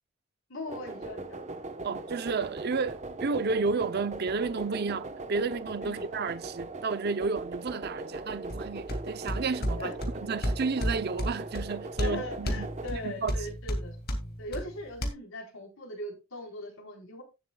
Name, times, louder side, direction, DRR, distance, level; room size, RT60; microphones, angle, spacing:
voice 1, 0.5-1.4 1.9-2.0 5.8-6.1 9.8-9.9 12.0-14.0 14.4-17.2, left 1 dB, 75° left, 4.1 m, -40 dB
sound 1, 0.7-12.9, right 2 dB, 35° right, 1.0 m, -40 dB
voice 2, 1.8-9.9 10.2-12.7 12.9-13.3, right 4 dB, 50° right, 0.6 m, -32 dB
sound 2, 8.5-15.1, equal, 50° left, 2.1 m, -34 dB
17.5 x 7.2 x 2.3 m
head